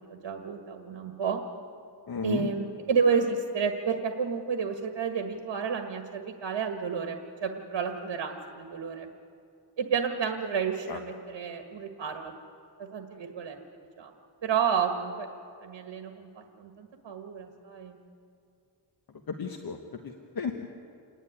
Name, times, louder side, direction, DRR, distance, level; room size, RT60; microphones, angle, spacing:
voice 1, 0.1-1.4 2.2-9.1 9.8-12.3 12.8-13.6 14.0-14.1 14.4-15.3 15.6-18.0, right 6 dB, 75° right, 4 dB, 1.6 m, -31 dB
voice 2, 2.1-2.5 10.9-11.0 19.3-20.6, left 5 dB, 55° left, 3 dB, 1.3 m, -34 dB
28.0 x 11.0 x 9.8 m, 2.4 s
wide cardioid pair, 125°, 43 cm